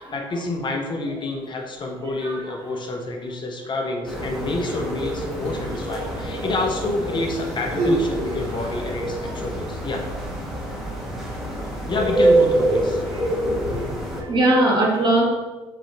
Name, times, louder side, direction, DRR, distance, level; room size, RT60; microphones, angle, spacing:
voice 1, 0.0-10.0 11.9-13.0, left 2 dB, 40° left, 2 dB, 0.8 m, -28 dB
voice 2, 2.0-2.4 13.1-13.8 14.2-15.2, right 1 dB, 40° right, -3 dB, 1.5 m, -21 dB
sound 1, 4.0-14.2, right 1 dB, ahead, 1.2 m, -25 dB
Human voice, 5.3-6.2 7.1-9.1 10.0-10.1, right 2 dB, 75° right, 0.9 m, -29 dB
4.9 x 3.0 x 3.4 m, 1.2 s
supercardioid pair, 70°, 12 cm